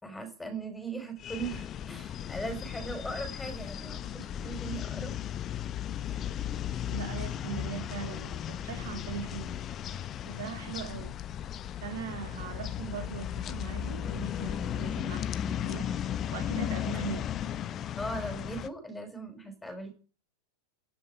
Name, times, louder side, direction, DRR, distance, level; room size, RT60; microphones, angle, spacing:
voice 1, 0.0-5.1 17.9-20.0, right 2 dB, 5° left, 6 dB, 5.6 m, -39 dB
sound 1, 1.2-18.7, left 10 dB, 30° left, 0.9 m, -35 dB
voice 2, 6.9-9.6 9.9-11.2 11.8-15.9 16.3-17.3, right 7 dB, 55° right, 7 dB, 2.9 m, -40 dB
16.5 x 12.0 x 5.2 m, 0.37 s
figure-of-eight pair, 90°, 0 cm